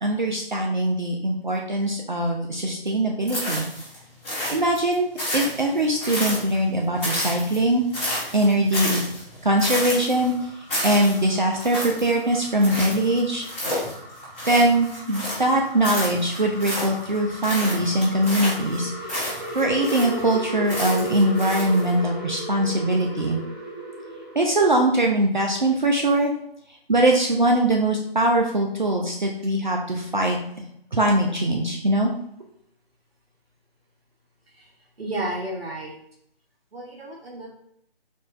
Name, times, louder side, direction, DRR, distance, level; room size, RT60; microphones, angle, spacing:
voice 1, 0.0-3.7 4.5-9.0 9.4-10.3 10.8-13.4 14.5-18.9 19.5-23.4 24.3-26.3 26.9-30.4 30.9-32.1, right 1 dB, 50° right, 1 dB, 0.5 m, -22 dB
sound 1, 3.3-4.0 4.2-6.7 7.0-15.5 15.8-17.2 17.4-20.3 20.7-21.9, equal, 15° left, 1.5 m, -30 dB
sound 2, 9.6-24.6, right 1 dB, 25° right, 0.8 m, -36 dB
voice 2, 35.0-36.0 36.7-37.5, right 1 dB, 75° right, -1 dB, 0.9 m, -32 dB
4.2 x 3.0 x 2.4 m, 0.72 s
figure-of-eight pair, 155°, 30 cm